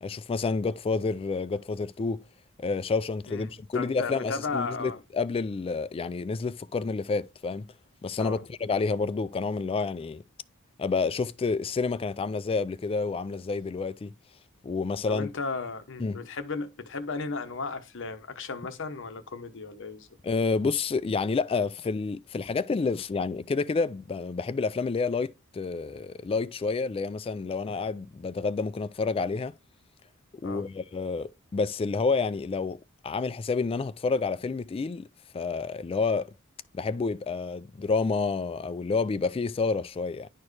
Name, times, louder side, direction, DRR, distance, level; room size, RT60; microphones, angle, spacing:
voice 1, 0.0-2.2 2.6-7.7 8.0-10.2 10.8-14.1 14.6-15.3 16.0-16.2 20.2-29.5 30.4-32.8 33.0-35.1 35.3-36.3 36.7-40.3, left 4 dB, 25° left, 0.3 m, -29 dB
voice 2, 3.3-5.0 8.2-8.4 15.1-20.1 30.4-30.6, left 4 dB, 60° left, 1.0 m, -35 dB
10.5 x 4.5 x 3.2 m
head